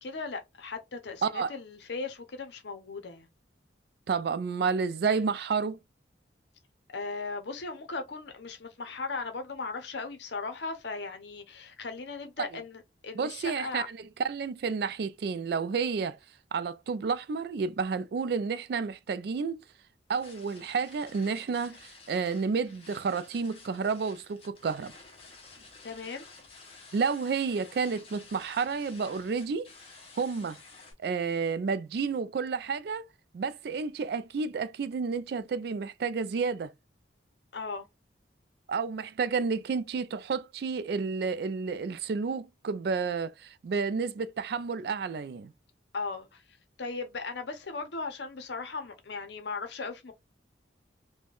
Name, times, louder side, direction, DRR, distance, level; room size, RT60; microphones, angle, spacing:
voice 1, 0.0-3.3 6.9-13.9 25.8-26.3 37.5-37.9 45.9-46.4 46.8-50.1, left 4 dB, 70° left, 0.7 m, -37 dB
voice 2, 1.2-1.5 4.1-5.8 13.2-16.2 16.5-19.6 20.1-24.9 26.9-29.7 30.2-30.6 31.0-33.1 33.3-36.7 38.7-45.5, right 5 dB, 55° right, 0.3 m, -30 dB
sound 1, 20.1-30.9, left 4 dB, 30° left, 0.7 m, -52 dB
3.5 x 2.2 x 2.3 m
head